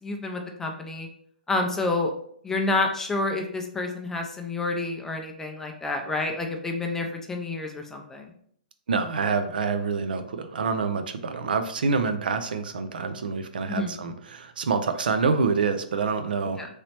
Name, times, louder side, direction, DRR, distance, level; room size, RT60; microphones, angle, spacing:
voice 1, 0.0-1.1 1.5-2.1 2.4-8.3 13.7-14.0 16.6-16.7, left 2 dB, 10° left, 2 dB, 0.4 m, -29 dB
voice 2, 8.9-16.6, right 4 dB, 75° right, 8 dB, 0.4 m, -26 dB
3.1 x 2.9 x 2.9 m, 0.64 s
hypercardioid pair, 135°, 5 cm